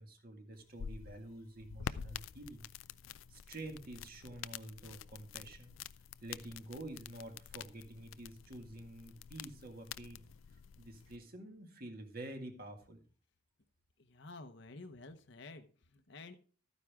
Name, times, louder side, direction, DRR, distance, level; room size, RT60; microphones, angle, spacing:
voice 1, 0.0-2.7 3.3-5.8 6.2-10.3 10.8-13.0, right 1 dB, 50° right, 4 dB, 2.0 m, -48 dB
sound 1, 0.5-11.2, left 7 dB, 80° left, 0.4 m, -48 dB
voice 2, 14.0-16.3, left 3 dB, 60° left, 7 dB, 0.9 m, -51 dB
13.5 x 9.5 x 3.6 m, 0.39 s
head